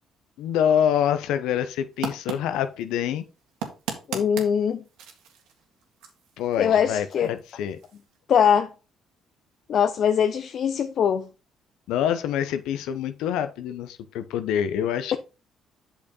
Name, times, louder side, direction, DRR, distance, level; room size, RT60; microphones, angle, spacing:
voice 1, 0.4-3.2 6.4-7.8 11.9-15.2, left 9 dB, 85° left, 0.9 m, -26 dB
sound 1, 1.9-8.2, right 7 dB, 85° right, 1.9 m, -39 dB
voice 2, 4.1-4.8 6.6-7.3 8.3-8.7 9.7-11.3, left 8 dB, 60° left, 0.6 m, -22 dB
8.3 x 5.8 x 4.0 m
supercardioid pair, 75°, 0 cm